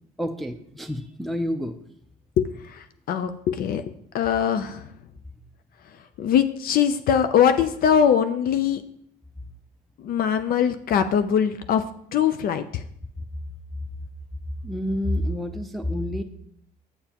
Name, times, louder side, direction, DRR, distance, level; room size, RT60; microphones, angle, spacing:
voice 1, 0.2-1.7 14.6-16.2, left 1 dB, ahead, 4 dB, 0.5 m, -28 dB
voice 2, 2.4-3.8 4.1-4.9 5.8-8.8 10.0-11.8 12.1-12.8, left 8 dB, 60° left, 10 dB, 0.5 m, -22 dB
8.0 x 6.9 x 2.9 m, 0.69 s
cardioid pair, 110°, 17 cm